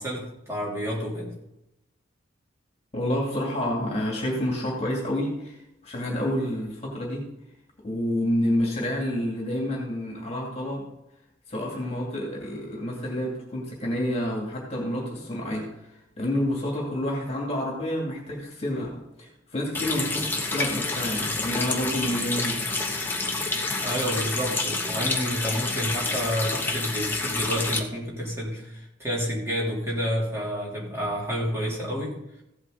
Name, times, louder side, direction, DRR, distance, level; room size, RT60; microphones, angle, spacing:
voice 1, 0.0-1.4 23.8-32.2, equal, 15° right, -5 dB, 3.3 m, -29 dB
voice 2, 2.9-7.3 7.8-10.9 11.5-22.6, left 1 dB, 35° left, -1 dB, 2.6 m, -29 dB
Water tap faucet, 19.7-27.8, left 3 dB, 10° left, 1.1 m, -28 dB
15.5 x 8.1 x 4.0 m, 0.86 s
head